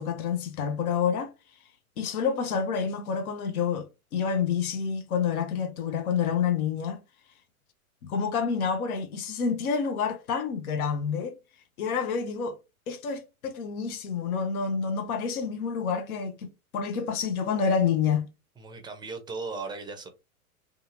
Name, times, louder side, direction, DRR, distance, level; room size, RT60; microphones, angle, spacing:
voice 1, 0.0-1.3 2.0-7.0 8.0-11.4 11.8-12.6 12.9-18.3, left 6 dB, 70° left, 0.7 m, -28 dB
voice 2, 18.6-20.1, right 4 dB, 10° right, 0.5 m, -37 dB
2.7 x 2.4 x 2.6 m
hypercardioid pair, 100°, 44 cm